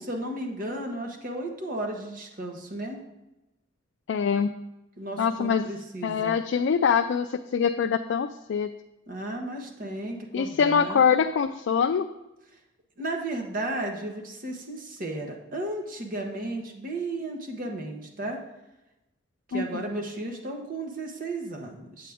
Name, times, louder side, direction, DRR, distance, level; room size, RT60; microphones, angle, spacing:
voice 1, 0.0-3.0 5.0-6.4 9.1-11.0 13.0-18.4 19.5-22.1, right 1 dB, 45° right, 3 dB, 1.2 m, -34 dB
voice 2, 4.1-4.5 5.2-5.7 6.0-8.7 10.3-12.1 19.5-19.8, left 6 dB, 65° left, 7 dB, 0.3 m, -24 dB
8.4 x 8.0 x 3.5 m, 0.97 s
head